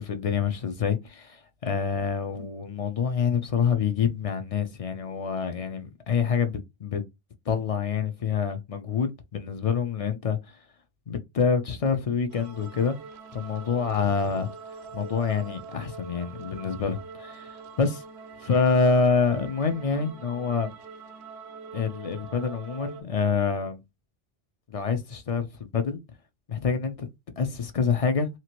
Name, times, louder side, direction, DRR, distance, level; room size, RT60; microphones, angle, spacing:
voice 1, 0.0-7.0 7.5-10.6 11.1-13.0 13.3-14.5 14.9-18.0 18.4-20.7 21.7-23.8 24.7-26.0 26.5-27.1 27.4-28.3, left 5 dB, 45° left, 0.5 m, -26 dB
sound 1, 12.3-23.0, right 5 dB, 85° right, 0.8 m, -44 dB
2.8 x 2.5 x 2.9 m
omnidirectional pair, 1.1 m